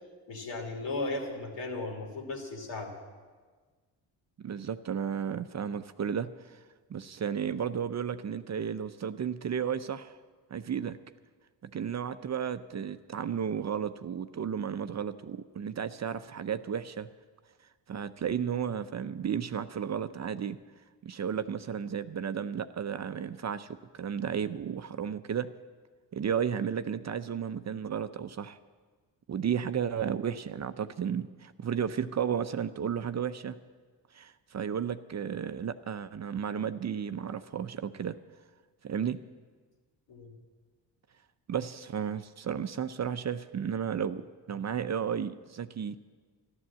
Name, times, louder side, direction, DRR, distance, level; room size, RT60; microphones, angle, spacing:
voice 1, 0.3-2.9 40.1-40.3, left 2 dB, 75° left, 1 dB, 3.1 m, -36 dB
voice 2, 4.4-6.6 6.9-10.2 10.5-11.0 11.6-17.1 17.9-20.6 21.0-25.5 26.1-28.6 29.3-33.6 34.1-38.2 38.8-39.2 41.5-46.0, right 8 dB, 40° right, 11 dB, 0.6 m, -33 dB
12.5 x 11.5 x 7.5 m, 1.4 s
cardioid pair, 75°, 45 cm